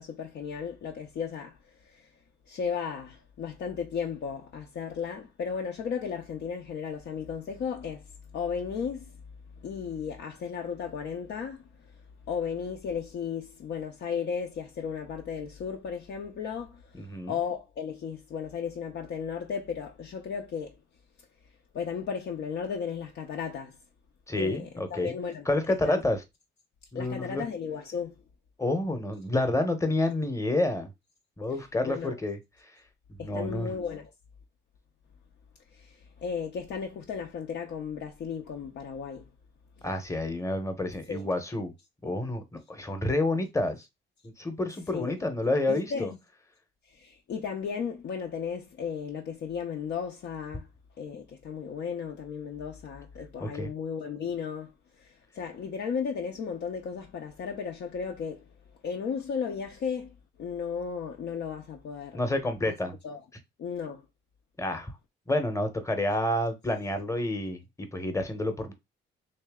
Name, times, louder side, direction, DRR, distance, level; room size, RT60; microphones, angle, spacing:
voice 1, 0.0-2.1 2.5-8.0 8.3-9.2 9.6-11.6 12.3-20.8 21.7-23.8 24.4-26.0 26.9-28.2 31.8-32.1 33.2-34.1 35.7-39.3 41.1-41.2 44.9-45.2 45.7-46.2 46.9-50.7 51.0-58.5 58.8-62.2 62.6-62.7 63.0-63.2 63.6-64.1, left 6 dB, 65° left, 0.6 m, -35 dB
voice 2, 17.0-17.3 24.3-25.1 25.5-26.2 26.9-27.4 28.6-30.9 31.4-32.4 33.2-33.7 39.8-41.7 42.0-43.8 44.4-46.1 53.4-53.7 62.1-63.0 64.6-64.9 65.3-68.7, left 1 dB, 15° left, 0.9 m, -29 dB
3.2 x 2.8 x 3.5 m
cardioid pair, 90°, 20 cm